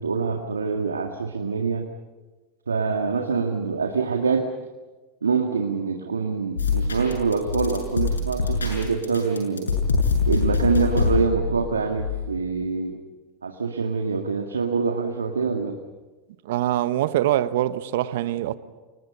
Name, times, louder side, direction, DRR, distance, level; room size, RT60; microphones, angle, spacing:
voice 1, 0.0-1.9 2.7-4.5 5.2-9.7 10.3-13.0 13.4-15.8, right 5 dB, 90° right, 1.9 m, -25 dB
sound 1, 6.6-12.3, left 4 dB, 90° left, 7.1 m, -25 dB
voice 2, 16.4-18.5, right 13 dB, 65° right, 1.3 m, -23 dB
29.5 x 25.0 x 5.6 m
hypercardioid pair, 90°, 0 cm